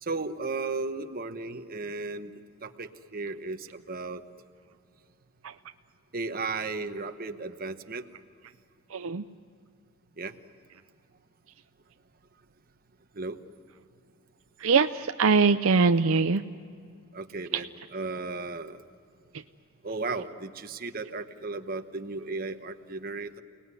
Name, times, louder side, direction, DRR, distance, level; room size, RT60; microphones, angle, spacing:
voice 1, 0.1-2.3 2.6-4.2 6.1-8.0 10.2-10.3 13.2-13.4 17.1-17.7 17.9-18.8 19.8-23.4, right 3 dB, 40° right, 7 dB, 1.1 m, -35 dB
voice 2, 8.9-9.2 14.6-16.4 17.5-17.6, right 4 dB, 65° right, 8 dB, 0.6 m, -22 dB
29.5 x 19.5 x 9.7 m, 2.4 s
head